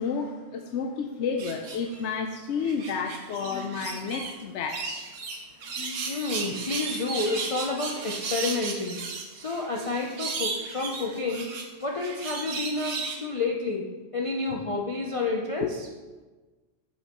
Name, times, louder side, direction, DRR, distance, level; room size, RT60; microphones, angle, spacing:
voice 1, 0.0-5.0 5.8-6.0 14.5-14.6 15.6-15.7, left 5 dB, 70° left, 4 dB, 0.9 m, -31 dB
sound 1, 1.4-2.1 2.6-4.3 4.7-13.2, right 4 dB, 85° right, 1.2 m, -35 dB
voice 2, 6.1-9.0 9.3-11.5 11.8-15.9, left 3 dB, 40° left, -1 dB, 0.5 m, -30 dB
8.6 x 6.5 x 3.0 m, 1.3 s
omnidirectional pair, 1.3 m